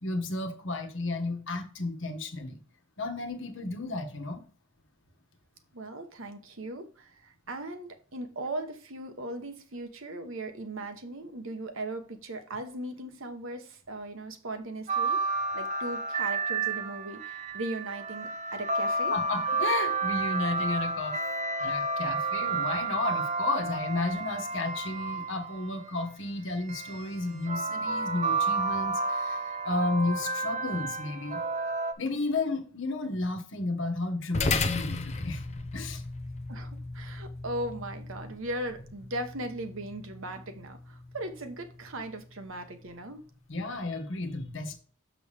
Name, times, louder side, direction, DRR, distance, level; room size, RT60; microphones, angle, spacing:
voice 1, 0.0-2.6 3.0-4.4 19.1-21.2 21.6-31.4 32.0-35.4 35.7-36.0 43.5-44.8, left 2 dB, 55° left, 1.2 m, -32 dB
voice 2, 5.7-15.2 15.5-19.1 36.5-43.2, right 1 dB, 65° right, 1.1 m, -38 dB
sound 1, 14.9-25.8 26.7-31.9, right 3 dB, 35° right, 0.6 m, -31 dB
sound 2, 34.3-43.0, left 3 dB, 30° left, 0.6 m, -36 dB
6.9 x 6.2 x 3.4 m
head